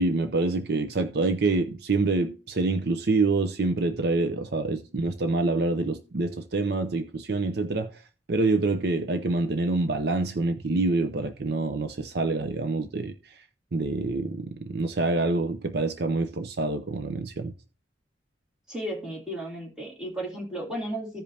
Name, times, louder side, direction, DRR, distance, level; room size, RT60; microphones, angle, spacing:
voice 1, 0.0-7.9 8.3-13.1 13.7-17.5, right 3 dB, 55° right, 0.6 m, -26 dB
voice 2, 18.7-21.2, right 1 dB, 5° right, 2.6 m, -34 dB
15.0 x 5.2 x 2.8 m
head